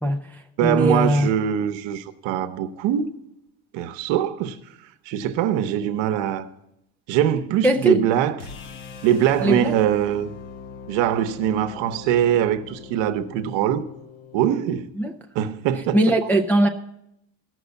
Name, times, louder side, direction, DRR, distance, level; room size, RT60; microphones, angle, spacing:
voice 1, 0.0-1.3 7.6-7.9 9.4-9.8 15.0-15.1 15.9-16.7, right 1 dB, 5° left, 0.4 m, -20 dB
voice 2, 0.6-3.1 3.7-4.6 5.1-6.5 7.1-8.4 9.0-10.3 10.9-13.9 14.3-14.9 15.3-16.1, right 10 dB, 70° right, 1.0 m, -22 dB
sound 1, 8.4-14.5, left 6 dB, 80° left, 1.1 m, -41 dB
13.5 x 6.3 x 8.1 m
cardioid pair, 135°, 46 cm